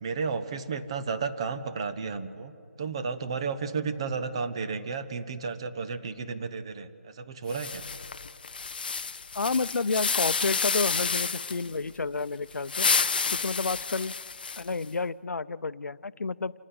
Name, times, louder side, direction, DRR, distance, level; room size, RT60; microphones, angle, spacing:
voice 1, 0.0-7.8, right 5 dB, 20° right, 9 dB, 0.7 m, -33 dB
sound 1, 7.5-11.7 12.5-14.8, left 5 dB, 35° left, 0.5 m, -30 dB
voice 2, 9.3-12.9 13.3-14.2 14.6-16.5, left 4 dB, 80° left, 17 dB, 0.6 m, -30 dB
28.5 x 9.8 x 9.6 m, 2.4 s
figure-of-eight pair, 175°, 8 cm